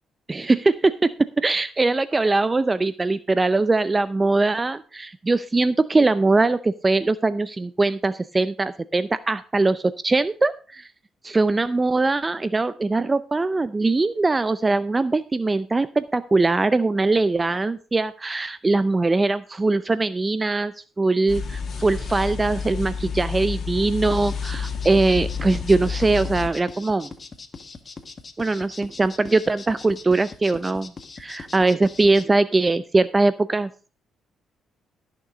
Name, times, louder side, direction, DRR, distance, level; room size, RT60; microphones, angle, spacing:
voice 1, 0.3-0.9 1.4-10.9 11.2-27.1 28.4-30.9 31.2-33.7, right 3 dB, 25° right, 14 dB, 0.5 m, -21 dB
sound 1, 21.3-26.5, left 6 dB, 55° left, 2.3 m, -29 dB
sound 2, 24.1-32.2, left 4 dB, 35° left, 1.5 m, -41 dB
14.0 x 6.7 x 5.0 m, 0.36 s
cardioid pair, 90°, 0 cm